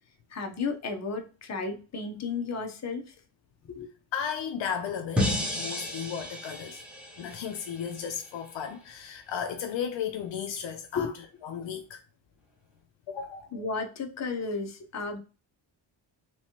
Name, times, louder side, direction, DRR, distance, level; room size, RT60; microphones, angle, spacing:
voice 1, 0.3-3.1 3.7-3.9 10.9-11.1 13.5-15.2, left 4 dB, 35° left, 0.8 m, -33 dB
voice 2, 4.1-5.3 5.5-6.8 7.2-11.1 11.4-12.0 13.1-13.5, left 8 dB, 70° left, 0.6 m, -34 dB
sound 1, 5.2-8.3, left 1 dB, ahead, 0.9 m, -32 dB
3.4 x 3.1 x 2.8 m
wide cardioid pair, 135°, 47 cm